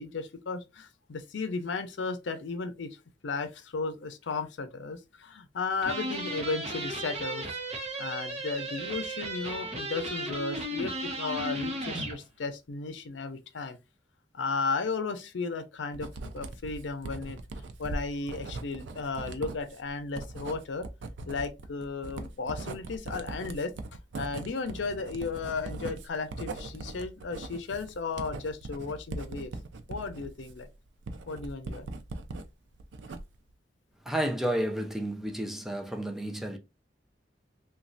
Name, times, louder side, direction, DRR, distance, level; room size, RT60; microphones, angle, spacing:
voice 1, 0.0-2.9 3.2-7.4 8.0-13.8 14.3-17.4 17.8-20.9 21.3-23.7 24.2-29.5 29.9-30.7 31.3-31.9, left 4 dB, 90° left, 0.5 m, -34 dB
sound 1, 5.8-12.2, right 1 dB, 40° right, 0.8 m, -35 dB
Writing, 15.9-32.5 32.8-33.5, right 2 dB, 80° right, 0.4 m, -40 dB
voice 2, 34.1-36.6, right 1 dB, ahead, 0.3 m, -31 dB
3.1 x 2.3 x 2.6 m
head